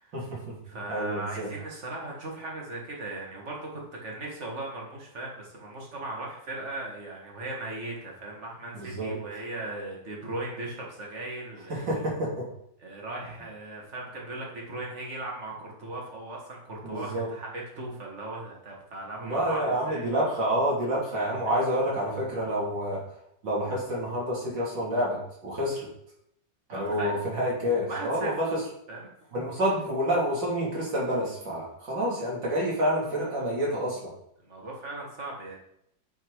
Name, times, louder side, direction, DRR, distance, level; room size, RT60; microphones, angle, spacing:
voice 1, 0.1-0.6 0.9-1.5 8.7-9.1 11.7-12.5 16.8-17.3 19.2-23.0 23.4-25.9 26.7-28.6 29.3-34.1, equal, 75° right, -5 dB, 3.5 m, -28 dB
voice 2, 0.6-12.1 12.8-20.1 21.4-21.5 26.7-27.2 27.9-28.4 28.9-29.1 33.2-33.5 34.4-35.6, right 2 dB, 40° right, -2 dB, 2.2 m, -38 dB
9.4 x 4.6 x 4.8 m, 0.74 s
omnidirectional pair, 2.0 m